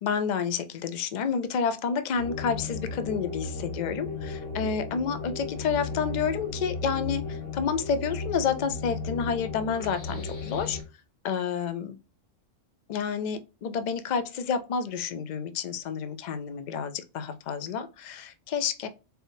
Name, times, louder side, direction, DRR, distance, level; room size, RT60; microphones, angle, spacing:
voice 1, 0.0-10.8 11.2-11.9 12.9-18.9, left 6 dB, 60° left, 0.4 m, -29 dB
sound 1, 2.2-10.8, left 3 dB, 75° left, 1.4 m, -35 dB
4.1 x 3.4 x 2.7 m
omnidirectional pair, 1.3 m